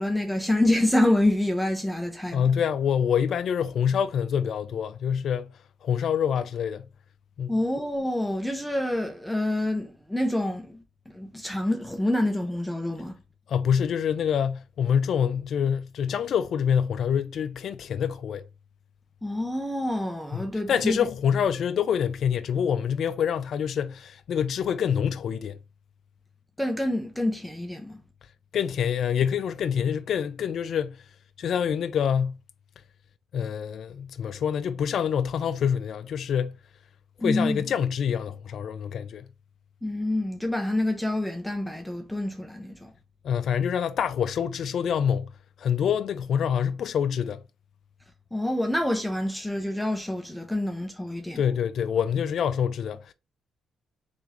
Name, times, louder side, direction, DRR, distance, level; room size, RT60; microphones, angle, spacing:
voice 1, 0.0-2.5 7.5-10.8 11.1-13.2 19.2-21.1 26.6-28.0 37.2-37.6 39.8-42.9 48.3-51.4, left 1 dB, 5° left, 0.7 m, -27 dB
voice 2, 2.3-5.5 5.8-6.9 7.4-7.6 13.5-18.4 20.3-25.6 28.5-31.0 31.4-32.4 33.3-36.6 37.2-39.3 43.2-45.3 45.6-47.4 51.4-53.1, left 8 dB, 65° left, 0.3 m, -26 dB
3.8 x 3.4 x 3.0 m
cardioid pair, 90°, 0 cm